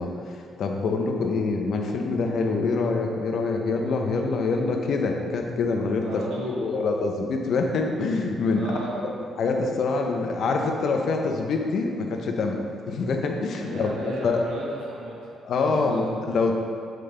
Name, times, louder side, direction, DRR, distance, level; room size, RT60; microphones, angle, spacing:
voice 1, 0.0-8.7 9.4-13.9 14.2-14.4 15.4-16.6, left 3 dB, 65° left, 2 dB, 0.8 m, -25 dB
voice 2, 6.0-6.7 8.5-9.0 13.6-15.4 15.7-16.0, right 1 dB, 90° right, -5 dB, 1.6 m, -34 dB
7.6 x 5.1 x 3.3 m, 2.4 s
cardioid pair, 90°, 0 cm